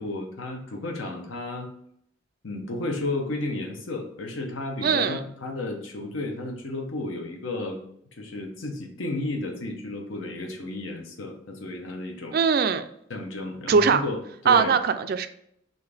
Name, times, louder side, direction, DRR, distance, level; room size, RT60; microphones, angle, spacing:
voice 1, 0.0-1.7 2.4-7.8 8.2-12.4 13.1-14.7, left 2 dB, 75° left, 3 dB, 0.8 m, -33 dB
voice 2, 4.8-5.2 12.3-12.8 13.7-14.0 14.5-15.3, right 6 dB, 50° right, 10 dB, 0.3 m, -21 dB
5.5 x 2.6 x 3.4 m, 0.71 s
head